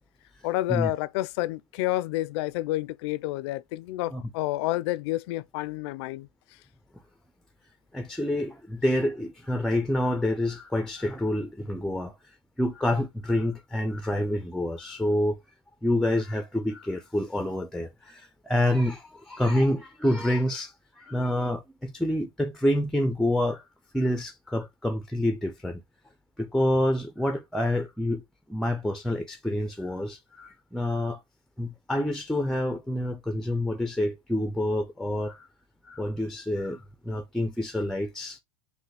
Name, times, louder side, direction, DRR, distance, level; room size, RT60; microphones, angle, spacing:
voice 1, 0.4-6.3, left 16 dB, 70° left, 0.4 m, -29 dB
voice 2, 7.9-12.1 12.6-15.4 15.8-20.7 21.0-23.6 23.9-25.8 26.4-28.2 28.5-31.2 31.6-35.5 35.8-38.4, left 1 dB, ahead, 0.4 m, -27 dB
6.0 x 2.1 x 3.1 m
hypercardioid pair, 105°, 15 cm